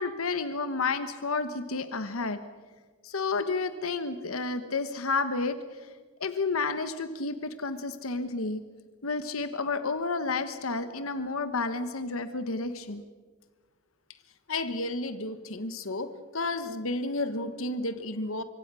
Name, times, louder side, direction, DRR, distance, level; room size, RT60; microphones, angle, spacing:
voice 1, 0.0-2.4 3.0-5.8 6.2-8.6 9.0-13.0, left 4 dB, 90° left, 10 dB, 1.3 m, -31 dB
voice 2, 14.5-18.4, left 2 dB, 75° left, 11 dB, 1.4 m, -32 dB
25.5 x 23.5 x 6.3 m, 1.4 s
head